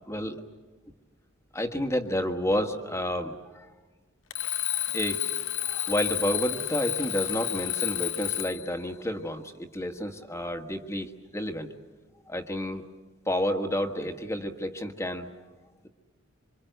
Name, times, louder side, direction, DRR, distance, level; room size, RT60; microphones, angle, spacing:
voice 1, 0.1-0.4 1.5-3.7 4.9-5.3 5.6-11.7 12.3-12.8 13.3-15.3, equal, 15° left, 5 dB, 1.5 m, -30 dB
Alarm, 4.3-8.7, left 14 dB, 75° left, 1.0 m, -31 dB
26.5 x 25.0 x 8.0 m, 1.3 s
head